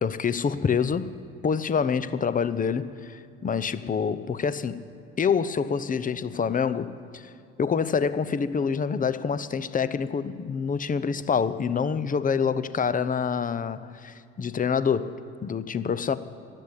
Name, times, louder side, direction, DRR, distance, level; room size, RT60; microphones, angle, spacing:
voice 1, 0.0-4.8 5.2-7.3 7.6-16.2, left 6 dB, 25° left, 0.7 m, -27 dB
13.0 x 8.3 x 9.7 m
hypercardioid pair, 60°, 33 cm